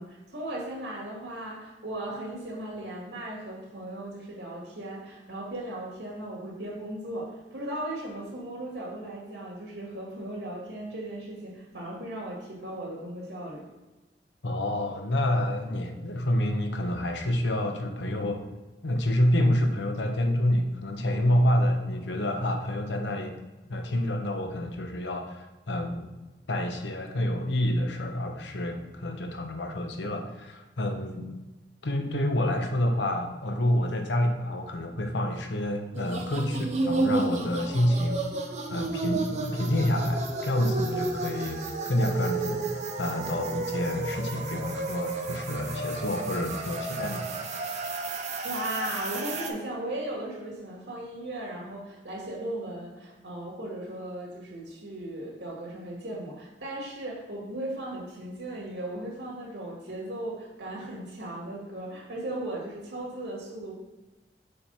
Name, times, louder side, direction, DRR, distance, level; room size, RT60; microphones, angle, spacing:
voice 1, 0.0-13.7 48.2-63.7, right 1 dB, 85° right, -3 dB, 2.1 m, -37 dB
voice 2, 14.4-18.4 18.8-23.4 23.7-26.1 26.5-31.3 31.8-38.2 38.7-42.7 43.0-47.3, left 1 dB, 90° left, 4 dB, 0.9 m, -28 dB
sound 1, 35.9-49.5, right 3 dB, 40° right, 0.7 m, -32 dB
5.0 x 4.4 x 5.6 m, 1.1 s
head